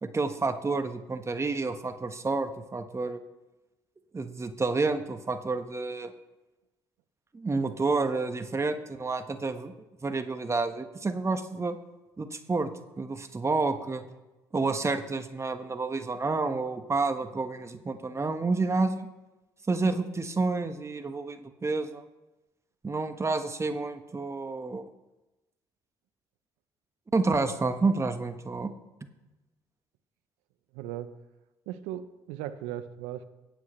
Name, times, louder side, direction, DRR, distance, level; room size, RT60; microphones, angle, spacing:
voice 1, 0.0-3.2 4.1-6.1 7.3-9.7 10.0-11.8 12.2-12.7 13.0-14.0 14.5-19.1 19.7-22.0 22.8-24.9 27.1-28.7, right 3 dB, 25° right, 8 dB, 1.3 m, -29 dB
voice 2, 30.7-31.1 31.7-33.3, right 12 dB, 80° right, 11 dB, 0.8 m, -37 dB
24.5 x 8.4 x 3.2 m, 1.0 s
hypercardioid pair, 55°, 11 cm